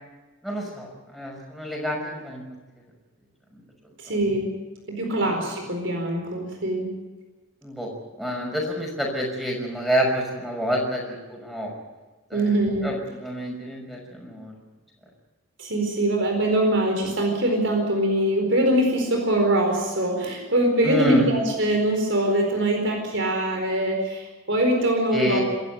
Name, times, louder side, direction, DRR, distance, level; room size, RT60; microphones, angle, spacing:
voice 1, 0.4-2.4 3.5-3.6 4.1-4.2 5.2-5.3 7.6-7.9 8.2-11.7 12.3-12.5 12.8-14.6 20.8-21.3 25.1-25.4, equal, ahead, 0 dB, 5.8 m, -28 dB
voice 2, 4.0-4.5 4.9-6.9 12.3-12.9 15.6-25.4, right 1 dB, 60° right, 2 dB, 4.5 m, -23 dB
26.5 x 13.5 x 9.3 m, 1.2 s
head